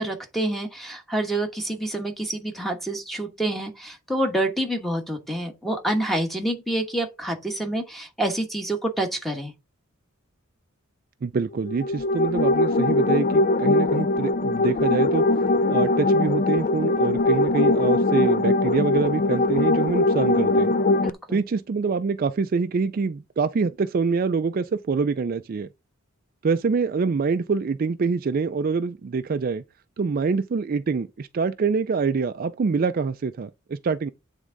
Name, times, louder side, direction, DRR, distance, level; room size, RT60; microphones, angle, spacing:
voice 1, 0.0-9.5 21.0-21.4, right 1 dB, ahead, 1.2 m, -27 dB
voice 2, 11.2-15.2 15.7-20.7 21.3-25.7 26.4-29.6 30.0-34.1, right 4 dB, 45° right, 0.4 m, -25 dB
sound 1, 11.7-21.1, left 2 dB, 35° left, 0.3 m, -21 dB
9.0 x 3.6 x 3.8 m
head